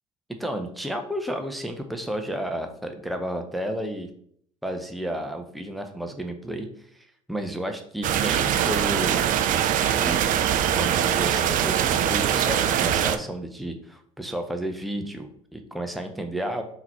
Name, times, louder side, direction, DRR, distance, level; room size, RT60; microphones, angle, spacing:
voice 1, 0.4-4.1 4.6-6.7 6.9-9.3 10.0-10.3 10.7-16.6, right 1 dB, ahead, 5 dB, 0.6 m, -32 dB
sound 1, 8.0-13.2, right 10 dB, 50° right, 0.4 m, -22 dB
3.8 x 2.9 x 4.4 m, 0.63 s
hypercardioid pair, 70°, 17 cm